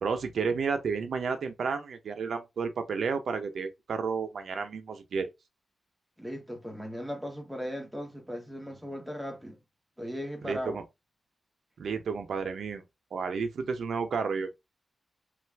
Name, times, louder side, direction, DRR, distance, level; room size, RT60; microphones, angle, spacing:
voice 1, 0.0-5.3 10.4-10.8 11.8-12.8 13.1-14.5, right 5 dB, 80° right, 0.6 m, -31 dB
voice 2, 6.2-9.6 10.0-10.8, equal, ahead, 0.9 m, -37 dB
3.1 x 2.4 x 3.3 m
wide cardioid pair, 130°, 0 cm